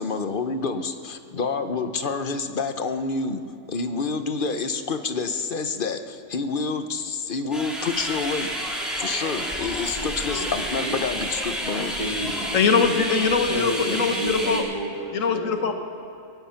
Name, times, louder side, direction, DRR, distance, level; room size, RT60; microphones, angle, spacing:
voice 1, 0.0-3.4 3.7-8.5 9.0-11.9, left 4 dB, 45° left, 8 dB, 0.9 m, -28 dB
sound 1, 7.5-14.6, equal, ahead, 3.3 m, -30 dB
voice 2, 10.0-10.5 10.8-11.0 12.0-13.0 13.5-15.5, right 1 dB, 35° right, -4 dB, 2.5 m, -32 dB
voice 3, 12.5-14.6 15.1-15.7, left 5 dB, 80° left, 6 dB, 1.6 m, -22 dB
23.0 x 9.5 x 5.8 m, 2.8 s
omnidirectional pair, 1.3 m